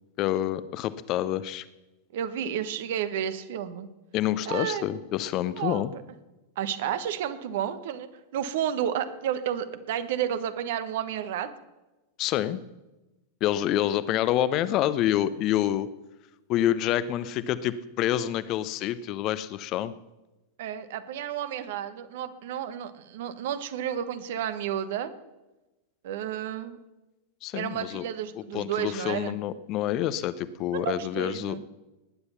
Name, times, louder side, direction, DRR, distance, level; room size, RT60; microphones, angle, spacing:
voice 1, 0.2-1.6 4.1-5.9 12.2-12.6 13.4-15.9 16.5-19.9 27.4-28.0 28.4-31.6, left 12 dB, 40° left, 16 dB, 0.8 m, -27 dB
voice 2, 2.1-3.9 4.5-4.9 5.6-5.8 6.6-11.5 20.6-25.1 26.0-26.8 27.5-29.4 30.7-31.6, right 9 dB, 55° right, 12 dB, 1.1 m, -31 dB
19.5 x 9.8 x 5.8 m, 1.0 s
figure-of-eight pair, 90°, 0 cm